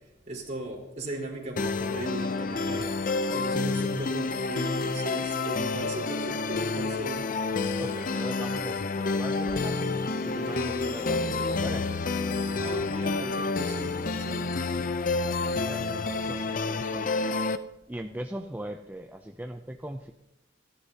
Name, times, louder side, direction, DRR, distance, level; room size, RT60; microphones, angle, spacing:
voice 1, 0.3-2.9 3.3-7.3 12.5-14.7, right 1 dB, 40° right, -2 dB, 4.1 m, -38 dB
sound 1, 1.6-17.6, left 3 dB, 45° left, 0.6 m, -29 dB
sound 2, 3.1-17.0, left 1 dB, 65° left, 3.0 m, -54 dB
voice 2, 7.8-9.8 10.2-12.0 15.1-17.3 17.9-20.1, right 1 dB, 10° right, 4 dB, 0.5 m, -40 dB
28.5 x 11.5 x 2.8 m, 0.92 s
head